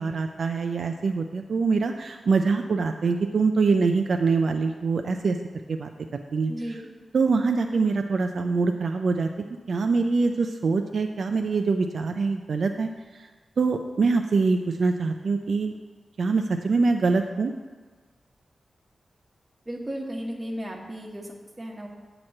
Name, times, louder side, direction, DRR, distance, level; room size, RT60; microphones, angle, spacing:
voice 1, 0.0-5.4 5.7-5.9 6.3-6.8 7.1-9.3 9.7-13.3 13.6-15.7 16.2-17.5, right 4 dB, 70° right, 5 dB, 0.3 m, -24 dB
voice 2, 6.5-6.8 19.7-21.9, equal, 20° right, -1 dB, 1.2 m, -35 dB
8.6 x 3.0 x 6.4 m, 1.4 s
wide cardioid pair, 95°, 0 cm